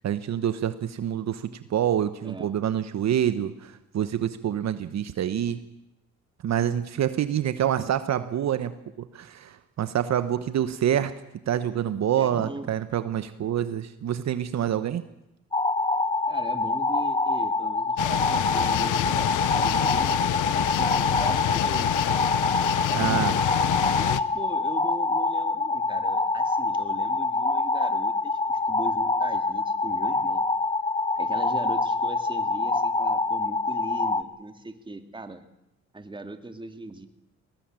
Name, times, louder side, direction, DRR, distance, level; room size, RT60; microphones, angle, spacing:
voice 1, 0.0-5.6 6.4-11.1 11.5-15.0 22.9-23.4, right 10 dB, 60° right, 12 dB, 1.2 m, -27 dB
voice 2, 12.1-12.7 16.3-23.4 24.0-30.4 31.2-35.4 35.9-37.1, right 2 dB, 15° right, 8 dB, 2.3 m, -39 dB
sound 1, 15.5-34.2, left 3 dB, 15° left, 1.3 m, -25 dB
sound 2, 18.0-24.2, left 14 dB, 80° left, 0.8 m, -27 dB
20.0 x 18.5 x 9.0 m, 0.87 s
cardioid pair, 90°, 30 cm